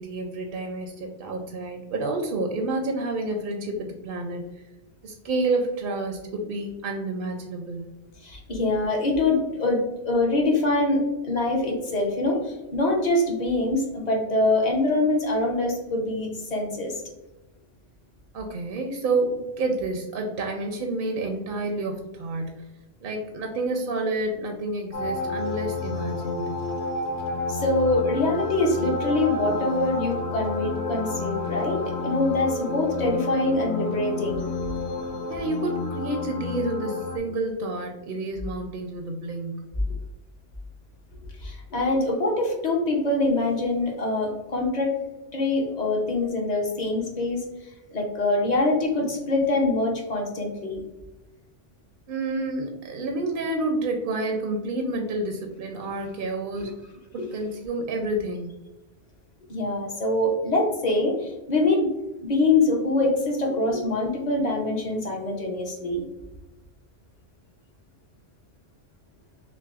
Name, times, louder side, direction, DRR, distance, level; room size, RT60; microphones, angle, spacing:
voice 1, 0.0-4.6 5.0-8.0 18.3-22.6 23.0-26.6 35.3-39.7 52.1-56.8 57.1-58.5, right 2 dB, 60° right, 3 dB, 0.6 m, -29 dB
voice 2, 8.2-17.0 27.5-34.4 41.4-44.9 45.3-47.4 47.9-50.8 56.6-56.7 59.5-61.9 62.2-66.0, left 2 dB, 45° left, 0 dB, 0.8 m, -24 dB
sound 1, 24.9-37.2, left 3 dB, 70° left, 0.9 m, -30 dB
5.9 x 2.1 x 2.3 m, 1.0 s
omnidirectional pair, 1.2 m